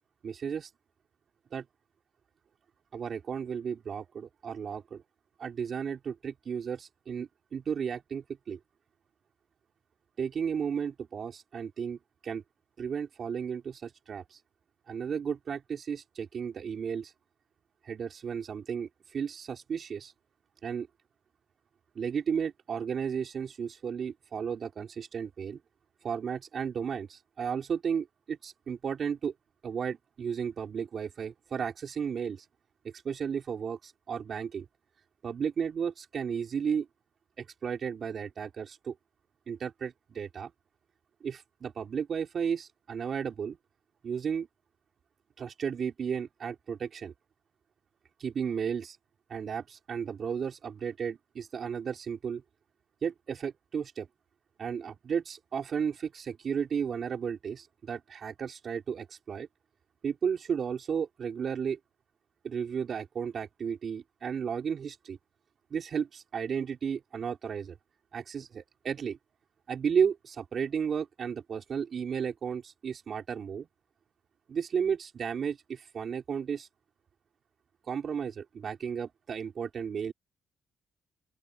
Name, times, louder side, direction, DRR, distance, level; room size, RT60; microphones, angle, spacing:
voice 1, 0.2-0.7 1.5-1.6 2.9-5.0 5.4-8.6 10.2-12.4 12.8-14.4 14.9-17.1 17.8-20.1 20.6-20.9 22.0-25.6 26.0-29.3 29.6-32.5 32.8-34.6 35.2-36.9 37.4-38.9 39.5-40.5 41.2-43.6 44.0-44.5 45.4-47.1 48.2-49.0 49.3-52.4 53.0-54.1 54.6-59.5 60.0-61.8 62.4-65.2 65.7-67.8 68.1-69.2 69.7-73.7 74.5-76.7 77.9-80.1, right 7 dB, 50° right, 4.1 m, -34 dB
open air
cardioid pair, 90°, 0 cm